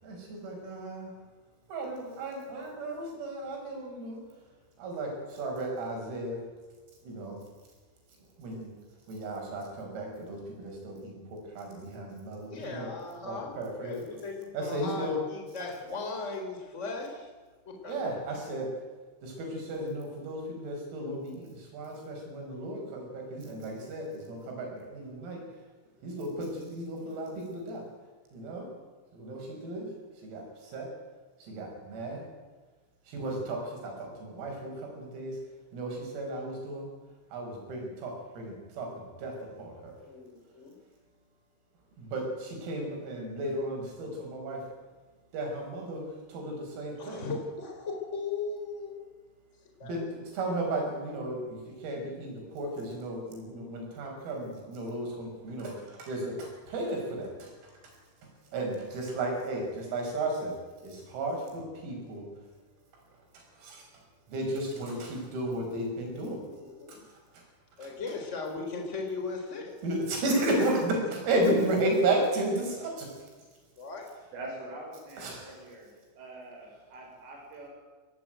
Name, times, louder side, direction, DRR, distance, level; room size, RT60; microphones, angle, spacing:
voice 1, 0.0-1.1 1.7-4.2 4.8-6.4 7.1-7.4 8.4-8.7 9.1-12.9 13.3-13.9 14.6-15.2 15.6-15.7 17.9-18.7 19.2-25.4 26.0-27.8 28.3-28.7 29.1-29.9 30.2-30.5 30.7-30.9 31.5-32.2 33.1-35.3 35.7-36.9 37.3-38.9 39.2-39.9 42.0-44.6 45.3-47.2 49.8-51.6 51.8-57.7 58.5-60.5 60.8-62.3 63.6-63.8 64.3-66.4 69.8-73.1 75.2-75.5, right 1 dB, 85° right, 1 dB, 8.7 m, -34 dB
voice 2, 12.5-17.3 17.7-18.0 40.0-40.7 47.0-49.2 49.8-50.0 66.4-67.0 67.8-69.8 73.8-74.1, left 4 dB, 15° left, 2 dB, 3.8 m, -38 dB
voice 3, 74.3-75.9 76.2-77.7, right 2 dB, 70° right, 0 dB, 8.7 m, -44 dB
23.5 x 18.0 x 9.2 m, 1.3 s
omnidirectional pair, 6.0 m